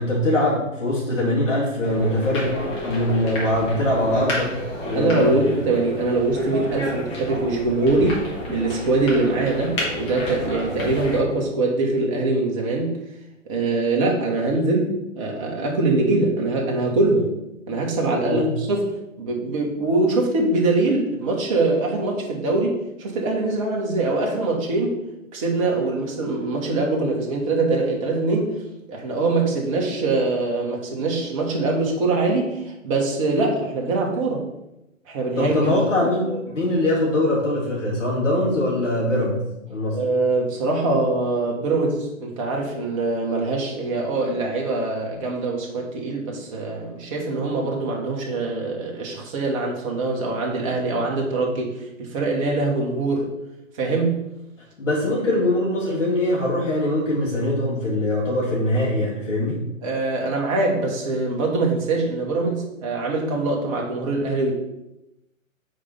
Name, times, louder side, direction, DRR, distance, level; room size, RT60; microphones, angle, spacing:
voice 1, 0.0-4.6 4.8-5.3 18.1-18.5 35.4-39.4 39.7-40.0 54.8-59.6, left 1 dB, 65° left, -5 dB, 2.4 m, -22 dB
sound 1, 1.8-11.2, left 1 dB, 15° left, 1.1 m, -31 dB
voice 2, 4.9-8.2 8.5-13.0 13.5-17.3 17.7-18.9 19.2-25.0 25.3-28.6 28.9-34.4 35.1-35.7 36.0-36.1 39.9-53.3 53.7-54.2 55.9-56.0 59.8-64.5, right 2 dB, 25° right, -1 dB, 1.1 m, -23 dB
5.1 x 4.3 x 5.2 m, 0.89 s
figure-of-eight pair, 130°, 40 cm